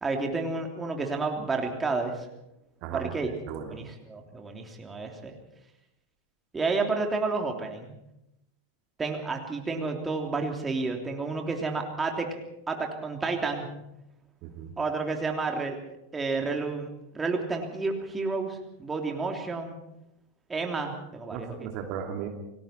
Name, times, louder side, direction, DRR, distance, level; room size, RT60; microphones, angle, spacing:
voice 1, 0.0-2.2 2.9-3.3 3.6-5.3 6.5-7.9 9.0-12.3 12.7-13.7 14.8-15.8 16.1-16.9 17.1-19.8 20.5-21.7, right 3 dB, 15° right, 2 dB, 3.2 m, -30 dB
voice 2, 2.8-3.8 14.4-14.7 21.3-22.3, right 8 dB, 40° right, 3 dB, 2.8 m, -36 dB
29.0 x 20.0 x 4.5 m, 0.85 s
figure-of-eight pair, 90°, 0 cm